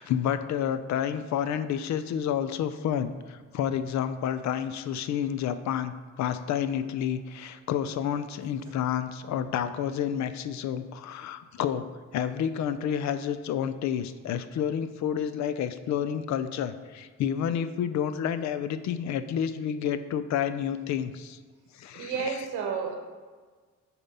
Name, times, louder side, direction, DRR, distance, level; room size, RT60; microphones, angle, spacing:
voice 1, 0.0-11.9 12.1-21.4 21.7-22.4, left 9 dB, 65° left, 12 dB, 0.5 m, -30 dB
voice 2, 21.9-22.9, right 6 dB, 90° right, 3 dB, 1.0 m, -31 dB
6.8 x 4.3 x 4.0 m, 1.5 s
cardioid pair, 90°, 30 cm